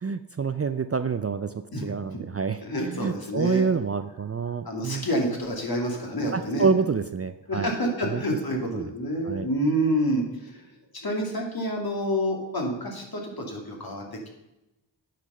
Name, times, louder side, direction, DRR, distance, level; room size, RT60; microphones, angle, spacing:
voice 1, 0.0-1.5 1.8-5.1 6.3-7.7 8.0-8.2 8.5-8.9 9.3-9.5, right 5 dB, 35° right, 10 dB, 0.4 m, -27 dB
voice 2, 1.7-2.2 2.6-3.7 4.7-6.7 7.5-10.6 11.0-14.0, equal, 50° left, 1 dB, 2.4 m, -28 dB
9.1 x 6.0 x 5.5 m, 0.94 s
wide cardioid pair, 65°, 46 cm